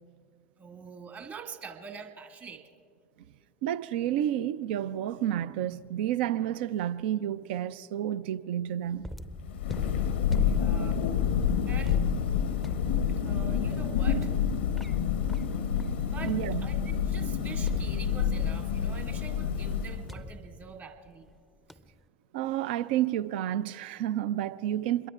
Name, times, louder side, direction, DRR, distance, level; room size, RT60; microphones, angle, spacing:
voice 1, 0.6-2.7 10.4-11.0 11.7-12.0 13.1-14.3 16.1-21.3 21.7-21.8, right 6 dB, 40° right, 1.7 m, -45 dB
voice 2, 3.6-9.0 16.2-16.7 22.3-25.1, right 11 dB, 65° right, 0.5 m, -30 dB
sound 1, 9.0-16.9 17.7-18.7 20.1-21.4 21.7-22.0, equal, ahead, 0.6 m, -45 dB
Thunder, 9.3-20.3, left 8 dB, 80° left, 0.7 m, -28 dB
26.5 x 22.5 x 2.4 m
hypercardioid pair, 80°, 6 cm